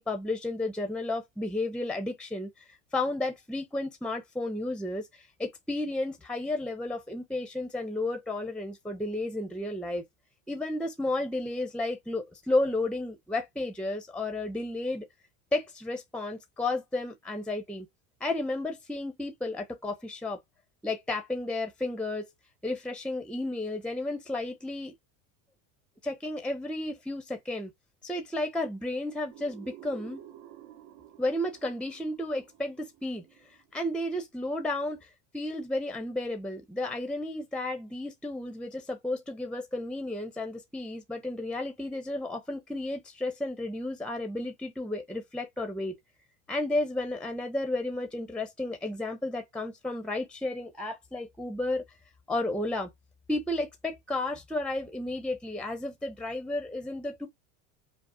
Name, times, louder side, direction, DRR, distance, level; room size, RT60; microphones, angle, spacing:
voice 1, 0.0-10.0 10.5-15.1 15.5-17.9 18.2-20.4 20.8-22.3 22.6-24.9 26.0-27.7 28.0-30.2 31.2-46.0 46.5-51.8 52.3-52.9 53.3-57.3, left 2 dB, 5° left, 0.8 m, -32 dB
sound 1, 29.3-34.0, right 12 dB, 55° right, 1.3 m, -51 dB
5.2 x 2.1 x 4.4 m
supercardioid pair, 125°, 40 cm